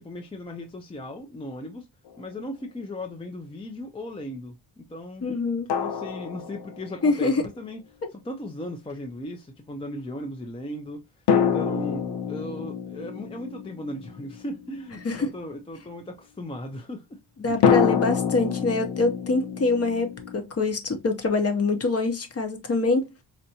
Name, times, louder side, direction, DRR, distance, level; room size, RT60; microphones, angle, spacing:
voice 1, 0.0-1.9 2.2-5.3 5.7-7.8 8.1-11.1 11.4-17.2 17.5-17.7, left 1 dB, 15° left, 0.4 m, -37 dB
sound 1, 2.1-2.2 5.7-7.2 11.3-14.9 17.6-20.4, left 7 dB, 75° left, 0.5 m, -26 dB
voice 2, 5.2-5.7 7.0-7.4 15.0-15.3 17.4-23.1, left 3 dB, 35° left, 0.8 m, -25 dB
4.4 x 2.5 x 2.7 m
wide cardioid pair, 145°, 41 cm